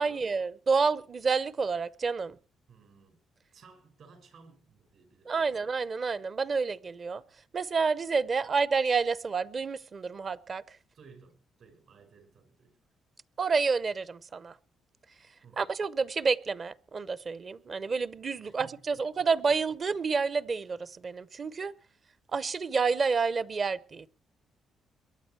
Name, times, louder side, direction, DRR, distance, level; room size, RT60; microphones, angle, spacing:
voice 1, 0.0-2.4 5.3-7.2 7.5-10.6 13.4-14.5 15.6-21.7 22.3-24.1, right 4 dB, 40° right, 0.7 m, -29 dB
voice 2, 2.7-3.2 3.5-5.6 8.4-8.5 10.9-12.7 15.4-15.7 18.4-18.8 19.2-19.3, right 5 dB, 65° right, 5.9 m, -56 dB
22.5 x 9.2 x 4.6 m
cardioid pair, 90°, 0 cm